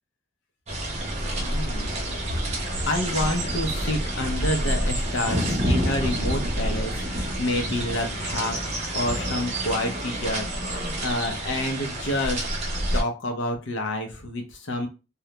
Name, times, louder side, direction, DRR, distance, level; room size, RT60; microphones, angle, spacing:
sound 1, 0.7-13.0, right 1 dB, 30° right, 0.5 m, -28 dB
voice 1, 1.4-1.9 2.9-12.5 12.9-14.9, left 1 dB, 60° left, 4 dB, 0.6 m, -29 dB
2.3 x 2.1 x 2.8 m, 0.31 s
head